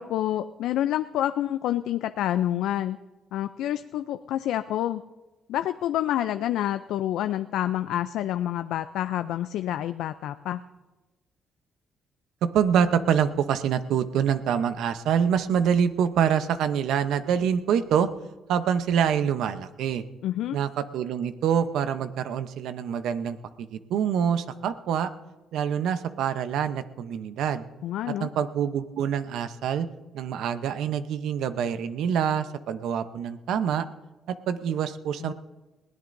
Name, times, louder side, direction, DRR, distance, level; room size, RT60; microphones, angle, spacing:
voice 1, 0.0-3.0 3.3-5.0 5.5-10.6 20.2-20.6 27.8-28.3 35.2-35.3, left 12 dB, 85° left, 10 dB, 0.4 m, -28 dB
voice 2, 12.4-18.1 18.5-20.0 20.5-25.1 25.5-27.6 28.2-29.9 30.1-33.9 34.3-35.3, right 8 dB, 80° right, 11 dB, 0.8 m, -26 dB
21.0 x 17.0 x 2.6 m, 1.1 s
cardioid pair, 90°, 0 cm